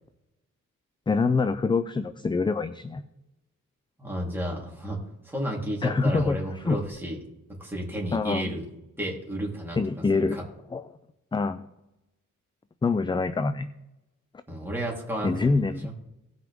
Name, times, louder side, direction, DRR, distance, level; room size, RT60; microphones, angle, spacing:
voice 1, 1.1-3.0 5.8-6.8 8.1-8.5 9.8-10.4 10.7-10.8 11.3-11.6 12.8-13.7 15.2-15.9, left 4 dB, 15° left, 12 dB, 0.4 m, -25 dB
voice 2, 4.0-5.0 5.2-7.2 7.6-8.6 9.0-9.8 10.1-10.4 14.5-15.9, right 1 dB, 5° right, -3 dB, 3.5 m, -32 dB
17.5 x 5.9 x 3.6 m, 0.93 s
cardioid pair, 95°, 33 cm